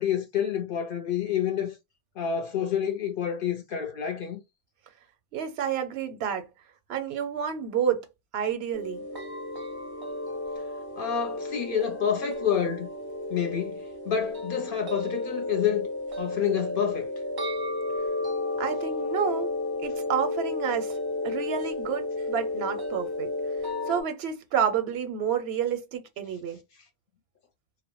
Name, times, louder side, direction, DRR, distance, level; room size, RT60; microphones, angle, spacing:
voice 1, 0.0-1.7 2.2-4.4 11.0-12.9 13.3-15.9 16.2-17.1, left 8 dB, 65° left, 0.7 m, -28 dB
voice 2, 5.3-6.5 6.9-8.1 8.3-9.0 18.6-19.5 19.8-20.9 21.2-23.3 23.9-26.6, right 8 dB, 90° right, 0.8 m, -29 dB
sound 1, 8.7-24.0, left 2 dB, 35° right, 0.4 m, -32 dB
2.1 x 2.0 x 2.9 m
omnidirectional pair, 1.0 m